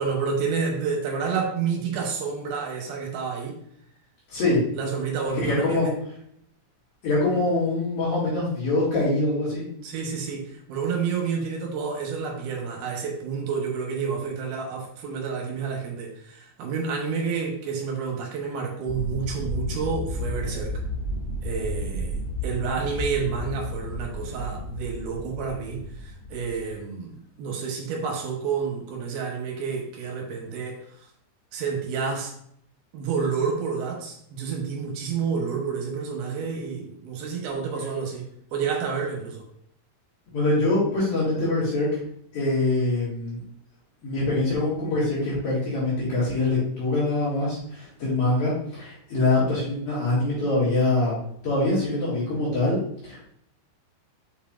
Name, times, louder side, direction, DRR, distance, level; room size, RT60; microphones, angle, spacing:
voice 1, 0.0-3.6 4.7-5.9 9.8-20.8 21.4-31.1 31.5-32.3 32.9-39.4, right 5 dB, 70° right, 1 dB, 2.5 m, -29 dB
voice 2, 4.3-4.6 5.4-5.9 7.0-9.6 40.3-42.0 42.3-43.4 44.0-51.1 51.4-52.8 53.0-53.2, left 2 dB, 60° left, -9 dB, 3.9 m, -24 dB
sound 1, 18.9-26.8, left 1 dB, 75° left, 2.4 m, -32 dB
7.1 x 5.6 x 2.5 m, 0.69 s
omnidirectional pair, 5.1 m